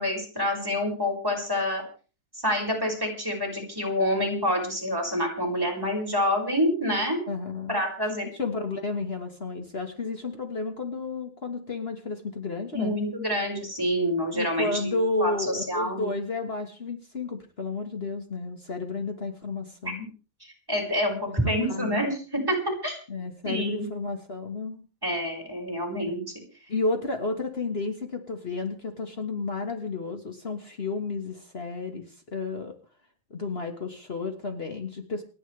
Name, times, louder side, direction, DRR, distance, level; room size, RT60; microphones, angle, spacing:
voice 1, 0.0-1.8 2.4-7.2 7.7-8.3 12.7-16.1 19.8-19.9 20.7-23.0 23.4-23.8 25.0-26.2, equal, 5° right, -1 dB, 5.6 m, -27 dB
voice 2, 7.3-7.8 8.3-13.0 14.3-20.0 21.3-22.1 23.1-24.8 26.7-32.0 32.3-32.7 33.3-35.2, left 3 dB, 55° left, 5 dB, 0.6 m, -32 dB
28.5 x 11.0 x 3.4 m, 0.38 s
omnidirectional pair, 3.8 m